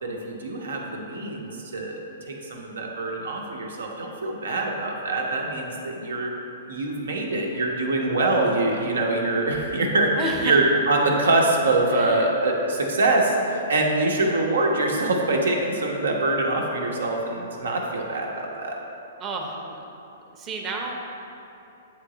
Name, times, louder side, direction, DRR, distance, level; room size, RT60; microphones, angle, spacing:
voice 1, 0.0-6.3 6.7-18.8, right 2 dB, 85° right, 0 dB, 0.9 m, -24 dB
voice 2, 10.2-10.6 11.9-12.3 19.2-19.8 20.3-21.0, right 2 dB, 25° right, 1 dB, 0.7 m, -31 dB
8.2 x 3.2 x 3.8 m, 2.8 s
hypercardioid pair, 140°, 0 cm